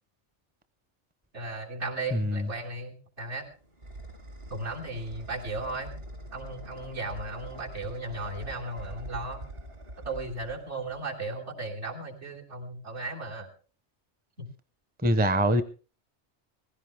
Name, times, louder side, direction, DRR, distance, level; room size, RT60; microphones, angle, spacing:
voice 1, 1.3-3.5 4.5-5.9 6.3-9.4 10.0-13.5 14.4-14.5, right 2 dB, 75° right, 3.6 m, -36 dB
voice 2, 2.1-2.5 15.0-15.6, equal, 10° right, 0.6 m, -23 dB
sound 1, 3.2-11.2, right 1 dB, 55° right, 2.2 m, -44 dB
19.5 x 16.0 x 3.4 m
omnidirectional pair, 1.2 m